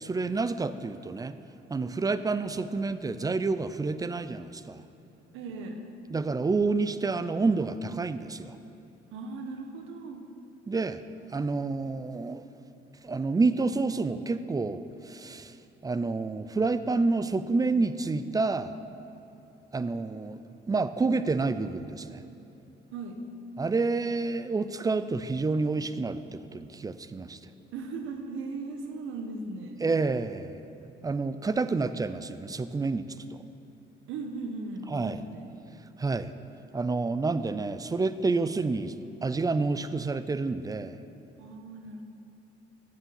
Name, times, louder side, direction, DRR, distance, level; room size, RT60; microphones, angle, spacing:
voice 1, 0.0-1.4 1.7-4.8 6.1-8.6 10.7-11.0 11.3-12.4 13.0-15.6 15.8-18.7 19.7-20.4 20.7-22.2 23.6-27.5 29.8-30.6 31.0-33.4 34.9-35.2 36.0-36.3 36.7-39.0 39.2-41.0, right 3 dB, 20° right, 13 dB, 0.4 m, -29 dB
voice 2, 5.3-5.9 9.1-10.3 22.9-23.3 27.7-29.8 34.1-35.5 41.4-42.0, right 3 dB, 90° right, 5 dB, 1.0 m, -38 dB
8.3 x 7.4 x 7.0 m, 2.9 s
cardioid pair, 90°, 20 cm